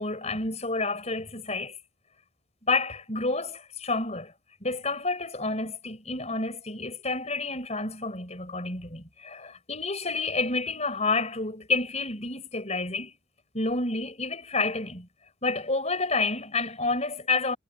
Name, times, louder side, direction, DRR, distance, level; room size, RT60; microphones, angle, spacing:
voice 1, 0.0-1.8 2.6-4.3 4.6-13.2 13.5-15.1 15.4-17.6, left 3 dB, 30° left, 5.4 m, -29 dB
head